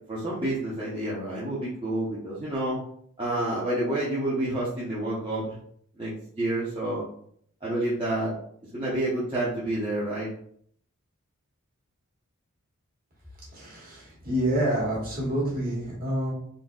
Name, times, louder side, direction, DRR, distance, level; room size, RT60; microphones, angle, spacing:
voice 1, 0.1-2.8 3.2-5.5 6.0-7.0 7.6-8.3 8.7-10.3, right 1 dB, 25° right, -9 dB, 0.8 m, -29 dB
voice 2, 13.5-16.3, right 1 dB, 40° right, -4 dB, 1.4 m, -28 dB
3.9 x 2.8 x 2.3 m, 0.62 s
head